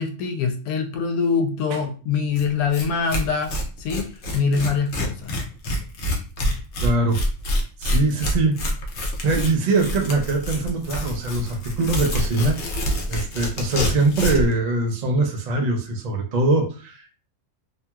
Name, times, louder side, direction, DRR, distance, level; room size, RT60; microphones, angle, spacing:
voice 1, 0.0-3.5 3.8-5.3, left 5 dB, 85° left, 5 dB, 1.1 m, -24 dB
Tearing, 2.4-2.5 2.7-2.8 3.1-14.5, equal, 60° left, 0.9 m, -26 dB
voice 2, 6.8-7.2 7.8-8.6 9.2-17.1, right 2 dB, 70° right, 2 dB, 0.4 m, -22 dB
2.8 x 2.8 x 2.3 m, 0.37 s
omnidirectional pair, 1.5 m